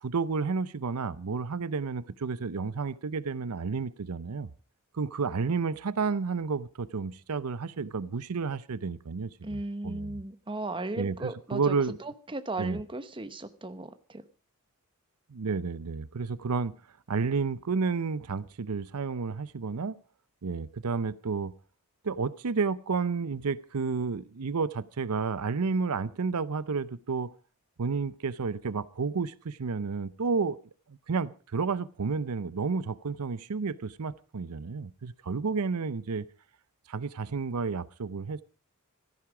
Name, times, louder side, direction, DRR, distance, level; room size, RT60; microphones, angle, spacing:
voice 1, 0.0-4.5 4.9-10.2 11.0-12.0 12.6-12.8 15.3-16.7 17.1-20.0 20.4-21.5 22.0-27.3 27.8-30.6 30.9-36.3 36.9-38.4, right 4 dB, 85° right, 0.7 m, -31 dB
voice 2, 9.4-14.2, right 2 dB, 25° right, 1.0 m, -36 dB
16.0 x 14.0 x 4.9 m
head